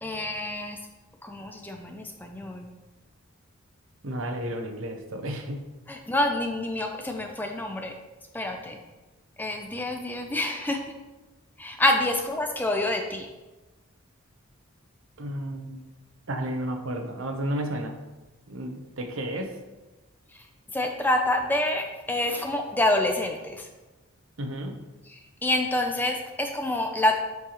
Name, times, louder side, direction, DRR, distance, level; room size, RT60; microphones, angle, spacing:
voice 1, 0.0-0.8 1.2-2.7 5.9-8.0 8.3-8.8 9.4-10.8 11.6-13.3 20.7-23.7 25.1-27.2, left 1 dB, 10° left, 3 dB, 0.4 m, -27 dB
voice 2, 4.0-5.6 15.2-15.8 16.3-18.0 18.5-19.6 24.4-24.8, right 1 dB, 70° right, 4 dB, 0.8 m, -32 dB
8.8 x 4.7 x 3.0 m, 1.1 s
head